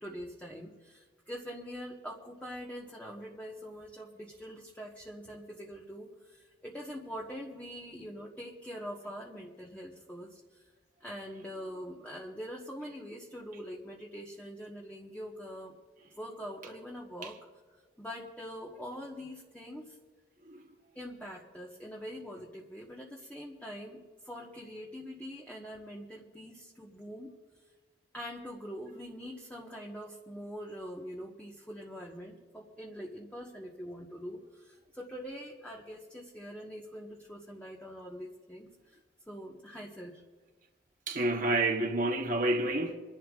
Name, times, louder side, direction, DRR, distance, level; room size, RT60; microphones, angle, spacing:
voice 1, 0.0-10.4 11.0-15.7 16.2-17.4 18.0-20.0 20.9-24.0 24.2-27.3 28.1-39.0 39.3-40.2, equal, 10° left, 1.3 m, -44 dB
voice 2, 41.1-42.9, right 2 dB, 45° right, 1.1 m, -29 dB
28.0 x 12.0 x 2.5 m
head